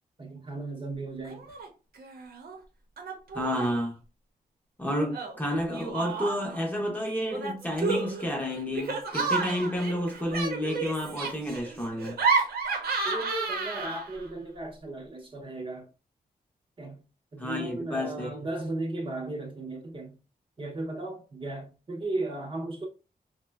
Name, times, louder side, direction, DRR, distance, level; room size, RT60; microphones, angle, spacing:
voice 1, 0.2-1.5 13.0-15.9 16.8-17.0 17.3-20.2 20.6-22.9, right 2 dB, 35° right, 0.7 m, -36 dB
Laughter, 1.2-1.7 2.0-2.6 3.0-3.8 5.1-6.6 7.3-14.3, right 4 dB, 85° right, 0.7 m, -31 dB
voice 2, 3.3-4.0 4.8-12.2 17.4-18.3, equal, 10° left, 0.7 m, -30 dB
3.6 x 2.1 x 2.2 m
wide cardioid pair, 105°, 15 cm